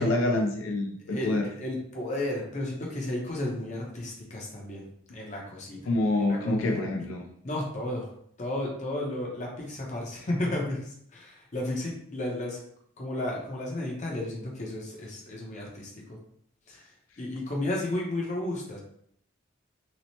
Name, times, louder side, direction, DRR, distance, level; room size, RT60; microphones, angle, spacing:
voice 1, 0.0-1.5 5.9-7.3, left 2 dB, 85° left, 2 dB, 0.4 m, -26 dB
voice 2, 1.1-4.9 5.1-5.9 6.3-6.8 7.4-8.1 8.4-12.6 13.0-16.2 16.7-16.9 17.2-18.8, left 1 dB, 35° left, -1 dB, 0.6 m, -33 dB
2.8 x 2.0 x 2.8 m, 0.66 s
head